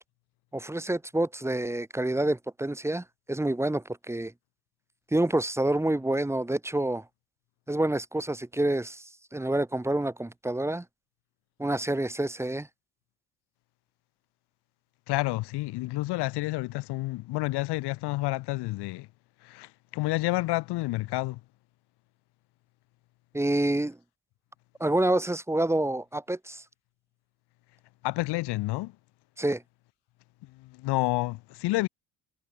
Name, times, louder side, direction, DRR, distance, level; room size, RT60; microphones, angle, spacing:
voice 1, 0.5-4.3 5.1-7.0 7.7-9.0 9.3-10.8 11.6-12.7 23.3-24.0 24.8-26.6 29.4-29.6, right 1 dB, 5° right, 1.5 m, -27 dB
voice 2, 15.1-19.1 19.4-21.4 28.0-28.9 30.6-31.9, left 19 dB, 80° left, 0.7 m, -29 dB
cardioid pair, 150°, 40 cm